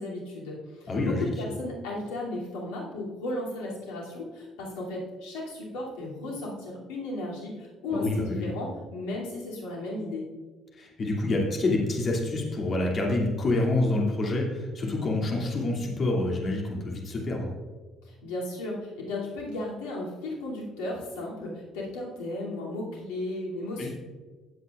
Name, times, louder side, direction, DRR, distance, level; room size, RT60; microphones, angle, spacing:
voice 1, 0.0-10.2 18.0-23.9, left 2 dB, 75° left, -4 dB, 2.7 m, -35 dB
voice 2, 0.9-1.3 7.9-8.5 10.7-17.5 23.8-23.9, left 2 dB, 45° left, -1 dB, 2.5 m, -27 dB
17.0 x 8.2 x 2.5 m, 1.4 s
hypercardioid pair, 55°, 0 cm